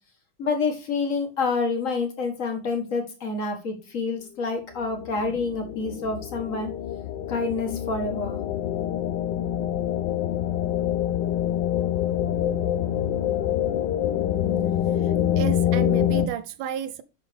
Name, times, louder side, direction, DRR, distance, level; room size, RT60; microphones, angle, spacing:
voice 1, 0.4-6.7 7.3-8.4, left 4 dB, 40° left, 2.0 m, -28 dB
sound 1, 4.9-16.3, left 11 dB, 75° left, 1.0 m, -26 dB
voice 2, 14.9-17.0, right 10 dB, 75° right, 1.3 m, -32 dB
11.5 x 3.9 x 3.4 m
omnidirectional pair, 2.4 m